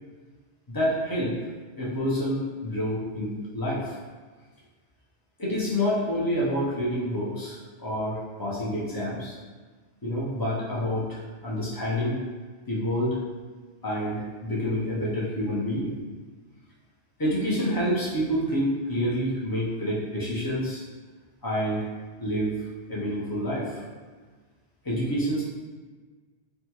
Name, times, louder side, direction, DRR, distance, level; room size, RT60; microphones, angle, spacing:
voice 1, 0.7-1.3 1.8-4.0 5.4-9.4 10.0-12.2 12.7-13.2 13.8-16.0 17.2-20.8 21.4-21.8 22.2-22.6 22.9-23.8 24.8-25.4, equal, 25° left, -7 dB, 0.5 m, -28 dB
3.4 x 2.1 x 2.9 m, 1.4 s
omnidirectional pair, 1.1 m